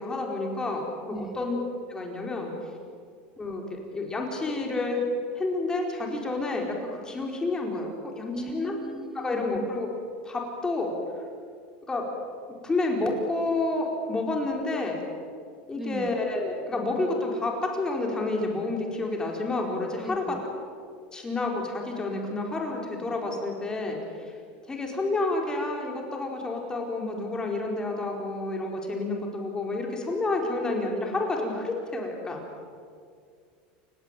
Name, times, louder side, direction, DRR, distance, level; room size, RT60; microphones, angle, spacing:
voice 1, 0.0-2.5 3.4-3.6 3.9-5.0 5.3-8.8 9.1-9.9 10.2-10.9 11.9-12.0 12.6-15.0 15.7-20.4 21.1-24.3 24.7-32.4, left 2 dB, 15° left, 1 dB, 4.6 m, -29 dB
voice 2, 1.1-1.5 8.3-9.7 15.7-16.2 20.0-20.4, right 1 dB, 5° right, 9 dB, 1.7 m, -38 dB
29.5 x 17.0 x 9.1 m, 2.2 s
supercardioid pair, 135°, 5 cm